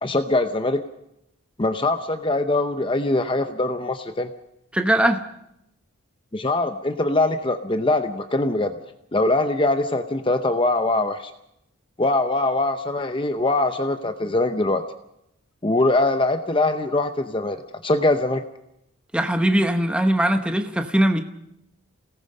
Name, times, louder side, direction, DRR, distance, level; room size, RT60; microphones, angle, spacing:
voice 1, 0.0-0.8 1.6-4.3 6.3-8.7 9.1-11.3 12.0-14.8 15.6-17.6 17.8-18.4, left 2 dB, 25° left, 8 dB, 0.7 m, -22 dB
voice 2, 4.7-5.2 19.1-21.2, right 1 dB, 5° right, 6 dB, 1.0 m, -20 dB
28.0 x 18.0 x 5.5 m, 0.81 s
head